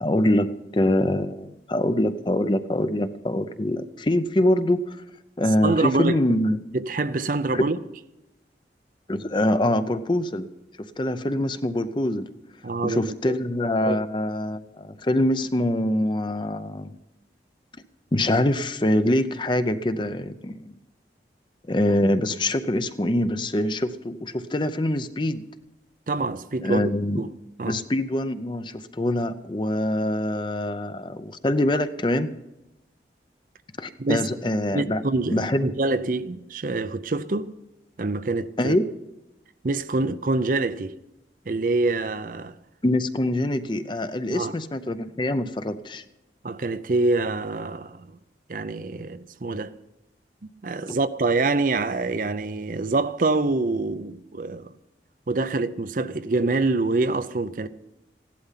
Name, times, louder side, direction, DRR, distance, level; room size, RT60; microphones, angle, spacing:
voice 1, 0.0-5.0 5.4-6.6 7.5-7.7 9.1-10.5 10.8-12.3 12.8-16.9 18.1-20.8 21.7-25.4 26.6-27.2 27.6-32.4 33.8-35.0 35.3-35.7 38.6-38.9 42.8-46.0 50.9-51.0, left 1 dB, 25° left, 0.6 m, -24 dB
voice 2, 5.6-6.2 6.7-7.8 12.6-13.4 13.8-14.0 26.1-26.8 27.2-27.3 27.6-27.8 34.0-34.2 34.7-37.5 38.0-38.8 39.6-40.9 41.5-42.6 44.3-44.6 46.4-48.2 48.5-49.7 50.4-54.7 55.3-57.7, right 3 dB, 50° right, 0.6 m, -25 dB
15.5 x 11.5 x 5.8 m
head